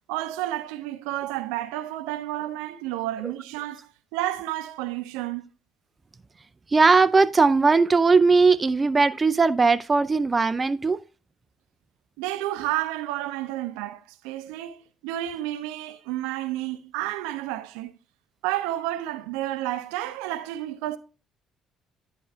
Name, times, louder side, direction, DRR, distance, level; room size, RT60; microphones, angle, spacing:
voice 1, 0.1-3.8 4.1-5.5 12.2-17.9 18.4-21.0, right 14 dB, 75° right, 0.6 m, -31 dB
voice 2, 6.7-11.0, right 4 dB, 30° right, 0.4 m, -19 dB
10.5 x 3.8 x 4.3 m
hypercardioid pair, 50°, 0 cm